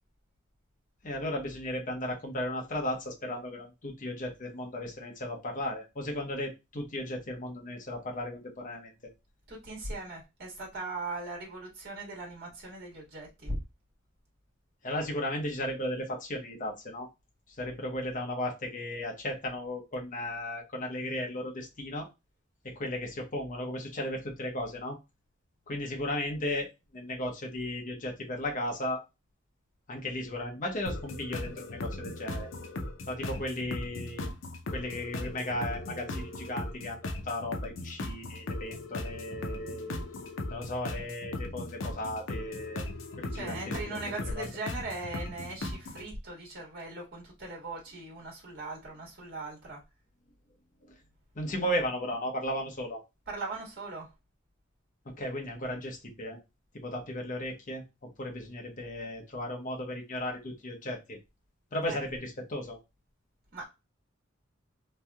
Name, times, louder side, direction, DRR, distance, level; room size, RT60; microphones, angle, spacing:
voice 1, 1.0-8.9 14.8-17.1 17.6-22.1 22.6-25.0 25.7-29.0 29.9-32.5 33.1-34.3 34.7-40.0 40.5-42.8 43.2-44.5 50.9-51.0 51.3-53.0 55.0-56.4 56.7-57.8 58.2-61.2 61.7-62.8, left 1 dB, 40° left, 0.8 m, -35 dB
voice 2, 9.5-13.6 33.2-33.4 43.3-49.8 53.3-54.1 61.9-62.0 63.5-63.7, right 2 dB, 55° right, 1.7 m, -39 dB
sound 1, 30.9-46.0, left 2 dB, 70° left, 0.6 m, -38 dB
3.1 x 2.7 x 2.2 m
head